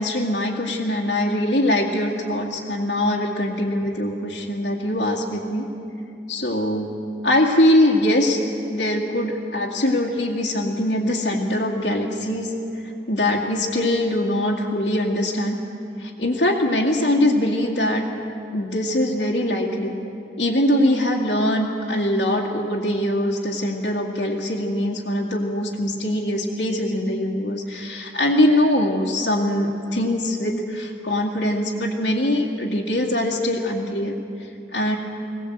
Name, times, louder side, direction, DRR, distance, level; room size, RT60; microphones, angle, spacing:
voice 1, 0.0-5.7 6.3-7.0 7.2-8.4 8.7-15.6 16.0-18.1 18.5-20.0 20.4-34.1 34.4-35.0, left 1 dB, 75° left, -2 dB, 2.2 m, -22 dB
21.0 x 18.0 x 8.0 m, 2.6 s
head